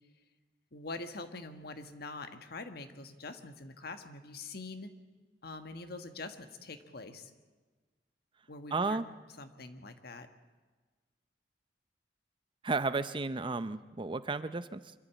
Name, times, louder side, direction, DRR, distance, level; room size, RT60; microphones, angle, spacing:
voice 1, 0.7-4.9 5.4-7.3 8.5-9.0 9.4-10.3, left 3 dB, 60° left, 8 dB, 1.5 m, -44 dB
voice 2, 8.7-9.1 12.6-14.9, right 3 dB, 30° right, 14 dB, 0.6 m, -33 dB
25.5 x 12.5 x 8.3 m, 1.3 s
head